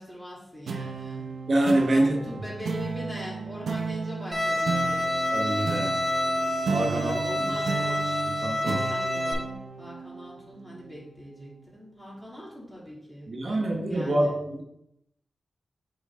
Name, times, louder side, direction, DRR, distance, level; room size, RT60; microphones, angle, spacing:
voice 1, 0.0-1.3 1.8-5.2 6.9-8.3 8.6-14.3, equal, 10° left, -6 dB, 2.4 m, -42 dB
sound 1, 0.7-11.5, right 5 dB, 90° right, 0.6 m, -34 dB
voice 2, 1.5-2.3 5.3-5.9 6.7-7.2 8.4-8.8 13.3-14.6, right 1 dB, 50° right, 0 dB, 1.0 m, -25 dB
Bowed string instrument, 4.3-9.3, left 1 dB, 15° right, 1.4 m, -28 dB
8.3 x 3.2 x 3.5 m, 0.79 s
wide cardioid pair, 95°, 0 cm